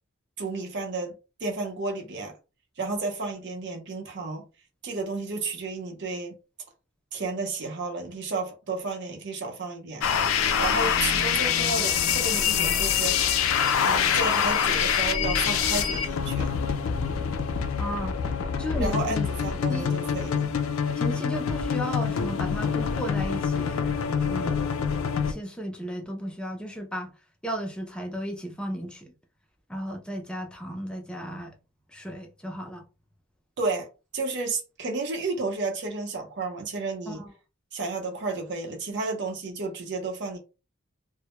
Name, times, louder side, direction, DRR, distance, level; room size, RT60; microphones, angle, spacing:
voice 1, 0.4-2.3 2.8-4.4 4.8-6.4 7.1-10.0 10.6-13.2 13.8-16.5 18.8-20.5 33.6-33.9 34.1-37.2 37.7-40.4, right 3 dB, 55° right, 0.6 m, -32 dB
sound 1, 10.0-25.3, left 7 dB, 80° left, 0.4 m, -25 dB
voice 2, 17.8-18.1 18.6-19.3 19.7-19.9 21.0-24.7 25.3-27.1 27.4-29.1 29.7-31.5 31.9-32.8 37.1-37.3, equal, 5° left, 0.4 m, -34 dB
2.1 x 2.1 x 2.9 m
head